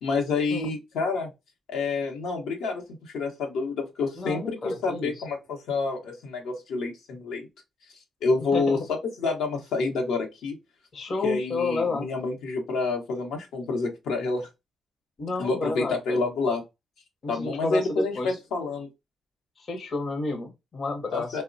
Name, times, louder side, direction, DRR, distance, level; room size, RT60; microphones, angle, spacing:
voice 1, 0.0-1.3 1.7-7.5 8.2-10.6 11.2-14.5 15.4-16.6 17.3-18.9 21.1-21.4, left 3 dB, 80° left, 0.7 m, -28 dB
voice 2, 4.2-5.1 8.4-8.8 10.9-12.1 15.2-16.2 17.2-18.4 19.6-21.4, left 3 dB, 45° left, 0.7 m, -31 dB
3.0 x 2.0 x 2.5 m
cardioid pair, 90°, 0 cm